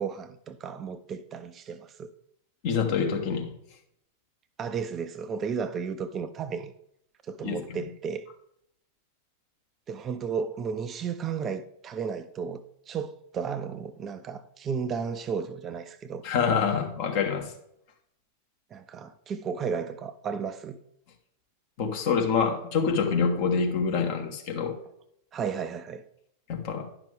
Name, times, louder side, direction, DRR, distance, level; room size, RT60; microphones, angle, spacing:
voice 1, 0.0-2.1 4.6-6.7 7.3-8.2 9.9-16.2 18.7-20.8 25.3-26.0, right 6 dB, 25° right, 0.5 m, -33 dB
voice 2, 2.6-3.5 7.4-7.6 16.2-17.5 21.8-24.8 26.5-26.9, left 6 dB, 45° left, 1.6 m, -26 dB
10.5 x 5.8 x 3.5 m
figure-of-eight pair, 90°, 0 cm